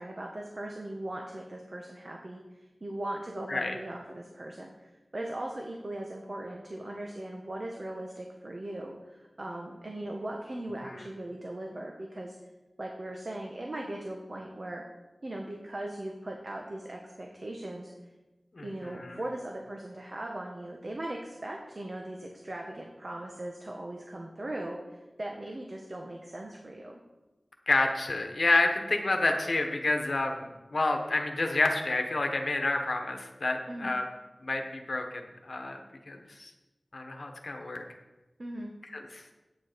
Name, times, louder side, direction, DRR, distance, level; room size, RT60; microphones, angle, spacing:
voice 1, 0.0-12.4 12.8-14.8 15.2-17.9 18.6-27.0 33.7-33.9 38.4-38.7, right 1 dB, 50° right, 1 dB, 1.2 m, -39 dB
voice 2, 18.5-19.2 27.7-34.0 34.4-35.8 36.1-36.5 36.9-37.8 38.9-39.2, left 2 dB, 70° left, 4 dB, 1.2 m, -29 dB
8.7 x 8.6 x 5.1 m, 1.1 s
wide cardioid pair, 55°, 0 cm